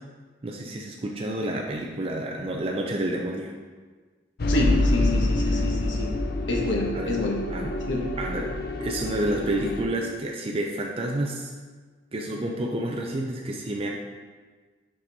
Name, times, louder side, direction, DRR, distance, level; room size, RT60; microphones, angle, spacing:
voice 1, 0.4-3.5 6.9-7.1 7.5-7.7 8.2-8.5 8.8-11.5 12.1-13.9, right 1 dB, 30° right, 0 dB, 0.5 m, -29 dB
sound 1, 4.4-9.8, left 2 dB, 55° left, 0.5 m, -26 dB
voice 2, 4.5-6.1 6.5-7.4 7.9-8.1, left 2 dB, 75° left, -1 dB, 1.1 m, -27 dB
5.6 x 5.1 x 4.0 m, 1.4 s
head